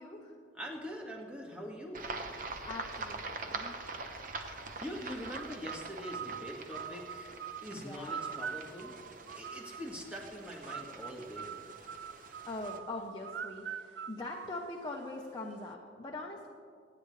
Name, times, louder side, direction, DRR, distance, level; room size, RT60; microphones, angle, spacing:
voice 1, 0.0-0.4 2.6-3.8 7.7-8.2 12.1-16.5, left 2 dB, 20° left, -1 dB, 0.9 m, -42 dB
voice 2, 0.5-2.1 4.8-7.4 7.6-8.9 9.4-11.6, equal, 5° right, -2 dB, 1.9 m, -43 dB
sound 1, 1.9-12.8, right 3 dB, 45° right, 0.9 m, -44 dB
sound 2, 5.3-10.0 10.7-15.1, right 7 dB, 65° right, 0.4 m, -44 dB
26.0 x 9.5 x 3.3 m, 2.3 s
head